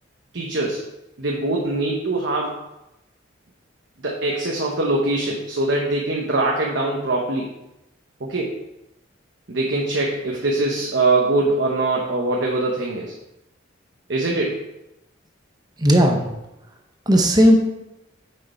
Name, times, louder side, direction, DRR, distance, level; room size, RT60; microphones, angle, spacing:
voice 1, 0.3-0.9 1.2-2.6 4.0-7.5 8.2-8.5 9.5-13.1 14.1-14.6, right 2 dB, 65° right, -2 dB, 1.1 m, -22 dB
voice 2, 15.8-16.3 17.1-17.5, equal, 20° right, 2 dB, 0.9 m, -15 dB
6.6 x 6.6 x 4.4 m, 0.91 s
head